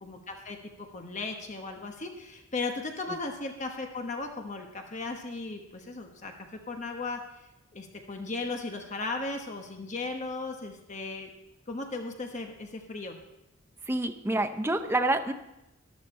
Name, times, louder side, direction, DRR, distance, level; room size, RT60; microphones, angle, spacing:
voice 1, 0.0-6.3 6.7-7.2 7.7-11.3 11.7-13.2, left 3 dB, 35° left, 3 dB, 1.1 m, -36 dB
voice 2, 13.9-15.3, right 2 dB, 10° right, 7 dB, 0.5 m, -27 dB
13.5 x 12.0 x 4.3 m, 0.93 s
head